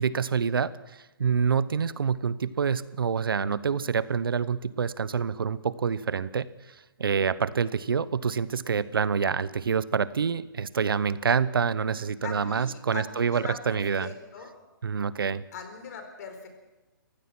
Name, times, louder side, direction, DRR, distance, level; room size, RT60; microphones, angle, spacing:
voice 1, 0.0-14.1 14.8-15.4, right 6 dB, 85° right, 17 dB, 0.9 m, -27 dB
voice 2, 12.2-14.5 15.5-16.5, left 5 dB, 45° left, 6 dB, 4.4 m, -40 dB
28.0 x 15.5 x 6.0 m, 1.1 s
hypercardioid pair, 150°, 12 cm